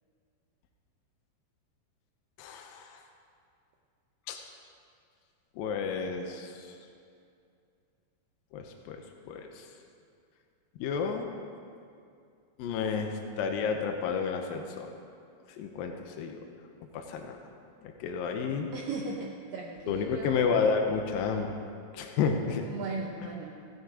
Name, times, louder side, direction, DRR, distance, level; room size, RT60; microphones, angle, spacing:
voice 1, 2.4-3.0 4.3-4.4 5.6-6.7 8.5-9.0 9.3-9.7 10.8-11.3 12.6-14.9 15.6-16.4 16.9-17.4 17.8-18.7 19.9-21.5 21.9-22.7, left 5 dB, 85° left, 3 dB, 2.0 m, -31 dB
voice 2, 18.7-20.4 22.6-23.5, right 4 dB, 90° right, -1 dB, 1.9 m, -37 dB
15.5 x 7.7 x 4.8 m, 2.4 s
omnidirectional pair, 5.0 m